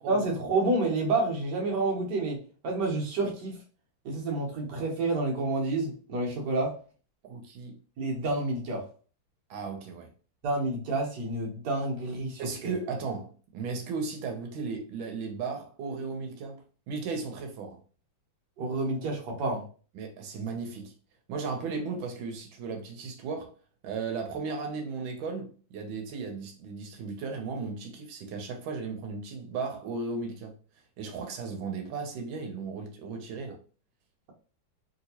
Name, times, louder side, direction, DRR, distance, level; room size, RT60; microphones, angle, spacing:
voice 1, 0.1-3.6 4.0-6.7 8.0-8.8 10.4-12.7 18.6-19.6, right 2 dB, 65° right, 1.4 m, -29 dB
voice 2, 7.2-7.7 9.5-10.1 12.4-16.6 16.9-17.8 19.9-20.9 21.3-23.5 23.8-30.5 31.0-33.6, right 4 dB, 90° right, 1.5 m, -35 dB
3.3 x 2.8 x 2.8 m
omnidirectional pair, 2.1 m